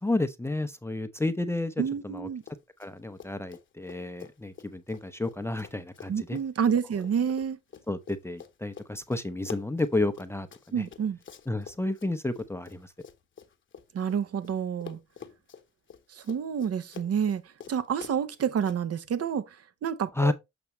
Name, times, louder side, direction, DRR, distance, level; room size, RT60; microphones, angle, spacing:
voice 1, 0.0-2.3 2.8-6.4 7.9-10.9 11.5-12.9 20.1-20.3, left 2 dB, 10° left, 0.6 m, -31 dB
voice 2, 1.8-2.4 6.1-7.6 10.7-11.2 13.9-15.0 16.1-17.4 17.7-19.6 19.8-20.3, right 7 dB, 50° right, 0.9 m, -28 dB
Run, 2.4-2.9 3.2-14.5 14.8-18.8, left 7 dB, 40° left, 1.0 m, -47 dB
7.0 x 5.9 x 3.1 m
cardioid pair, 90°, 30 cm